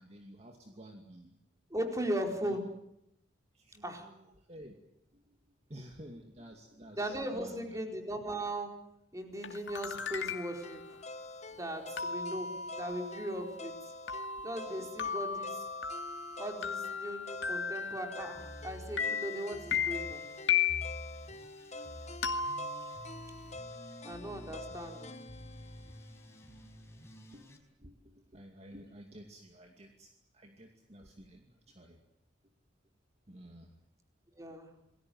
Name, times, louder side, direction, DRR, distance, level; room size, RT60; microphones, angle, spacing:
voice 1, 0.0-1.4 2.4-2.6 3.5-4.8 5.1-7.8 14.8-15.1 19.7-19.8 21.1-21.2 27.3-27.5 27.8-32.0 33.3-33.8 34.5-34.6, equal, 35° right, 3 dB, 2.5 m, -52 dB
voice 2, 1.7-2.6 3.8-4.1 7.0-8.7 9.1-11.0 11.5-13.9 14.4-15.6 16.4-20.2 24.0-25.2 34.3-34.7, right 1 dB, 20° right, 4 dB, 4.4 m, -38 dB
sound 1, 9.4-10.8 12.0-18.6 19.0-21.1 22.2-23.5, left 7 dB, 75° left, 2.4 m, -36 dB
sound 2, 10.6-26.7, left 2 dB, 40° left, 1.3 m, -47 dB
sound 3, 18.3-27.6, equal, 15° left, 5.4 m, -50 dB
28.5 x 21.0 x 7.9 m, 0.79 s
head